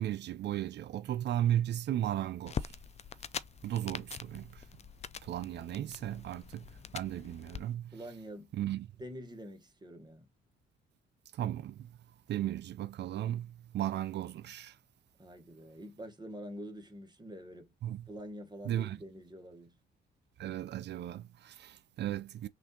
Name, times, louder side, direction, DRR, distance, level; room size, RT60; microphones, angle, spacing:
voice 1, 0.0-2.7 3.6-4.6 5.2-7.9 8.5-8.9 11.3-11.9 12.3-14.8 17.8-18.0 18.6-19.0 20.4-22.5, right 12 dB, 60° right, 0.4 m, -35 dB
sound 1, 2.5-7.6, left 7 dB, 35° left, 0.4 m, -43 dB
voice 2, 7.9-8.5 9.0-10.3 15.2-17.7 18.1-19.8, equal, 20° right, 1.1 m, -46 dB
6.1 x 2.5 x 2.7 m
cardioid pair, 90°, 20 cm